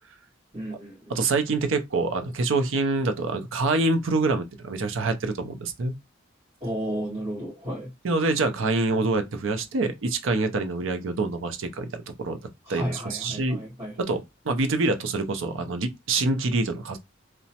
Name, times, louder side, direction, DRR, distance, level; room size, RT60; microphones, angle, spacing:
voice 1, 0.5-1.1 6.6-7.9 12.6-13.9, equal, 25° right, 1.4 m, -33 dB
voice 2, 1.1-5.9 8.0-12.4 12.7-13.6 14.0-17.0, right 3 dB, 70° right, 0.5 m, -26 dB
2.9 x 2.1 x 2.8 m
head